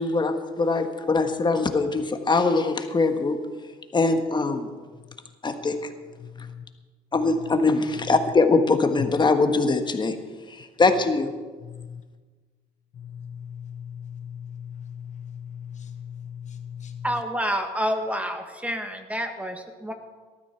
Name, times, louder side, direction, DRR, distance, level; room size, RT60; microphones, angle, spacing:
voice 1, 0.0-3.4 3.9-4.7 5.4-5.8 7.1-10.2 10.6-11.3, left 3 dB, 25° left, 7 dB, 1.4 m, -22 dB
voice 2, 11.6-12.0 13.0-17.0, left 8 dB, 45° left, 7 dB, 1.0 m, -38 dB
voice 3, 17.0-19.9, equal, 10° right, 6 dB, 1.6 m, -28 dB
18.5 x 13.0 x 4.5 m, 1.4 s
cardioid pair, 110°, 17 cm